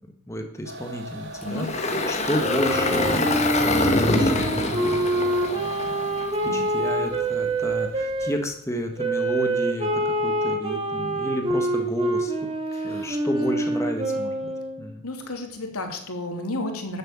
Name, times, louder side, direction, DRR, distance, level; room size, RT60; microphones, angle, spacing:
voice 1, 0.3-5.1 5.4-12.3 12.8-14.5 14.8-15.0, equal, 15° left, 4 dB, 1.5 m, -32 dB
sound 1, 0.6-6.3, right 1 dB, 55° right, 2.2 m, -39 dB
Engine, 1.4-6.7, left 2 dB, 30° left, 1.6 m, -25 dB
Wind instrument woodwind instrument, 2.4-8.3 9.0-14.8, right 1 dB, 25° right, 2.5 m, -26 dB
voice 2, 12.7-13.2 15.0-17.0, left 2 dB, 85° left, 4 dB, 3.0 m, -32 dB
13.0 x 7.8 x 8.8 m, 0.76 s
head